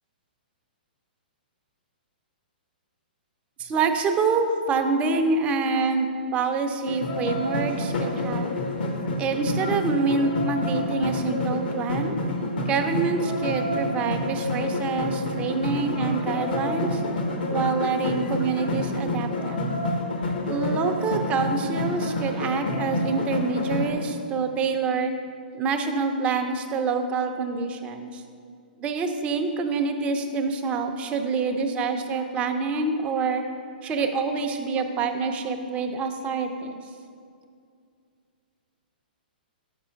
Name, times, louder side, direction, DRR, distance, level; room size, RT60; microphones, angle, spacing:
voice 1, 3.6-8.5 9.2-12.2 12.7-17.0 17.5-19.7 20.4-25.1 25.5-28.2 28.8-33.4 33.8-36.8, right 4 dB, 25° right, 5 dB, 0.5 m, -26 dB
sound 1, 6.9-23.9, left 1 dB, 70° left, 1.0 m, -28 dB
6.0 x 4.9 x 5.7 m, 2.3 s
hypercardioid pair, 130°, 5 cm